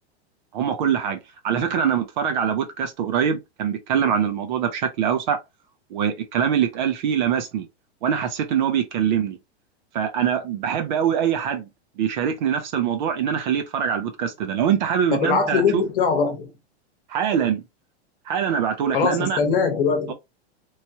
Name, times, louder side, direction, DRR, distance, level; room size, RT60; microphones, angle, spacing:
voice 1, 0.5-5.4 5.9-7.7 8.0-9.4 9.9-11.7 12.0-15.8 17.1-17.6 18.3-19.4 20.1-20.2, right 8 dB, 45° right, 0.6 m, -23 dB
voice 2, 15.1-16.5 18.9-20.1, left 5 dB, 55° left, 1.0 m, -21 dB
3.1 x 2.2 x 2.7 m
supercardioid pair, 160°, 33 cm